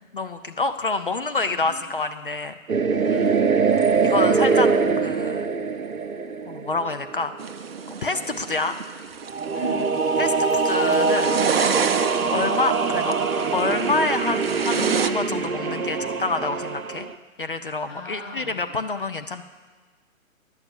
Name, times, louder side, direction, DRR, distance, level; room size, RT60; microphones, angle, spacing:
voice 1, 0.1-2.5 4.0-4.7 5.0-5.5 6.5-7.3 8.0-8.8 10.2-11.4 11.7-11.8 12.3-13.1 13.5-17.1 17.4-19.4, left 3 dB, 40° left, 8 dB, 0.4 m, -27 dB
voice 2, 1.4-1.8 3.0-3.6 8.1-8.3 9.5-10.3 12.1-12.5 17.9-18.7, equal, 20° left, -5 dB, 4.5 m, -38 dB
sound 1, 2.7-7.3 9.3-17.1, right 5 dB, 90° right, 0.7 m, -23 dB
sound 2, 7.4-15.1, right 6 dB, 45° right, 0.6 m, -29 dB
11.0 x 8.2 x 7.1 m, 1.3 s
figure-of-eight pair, 140°, 41 cm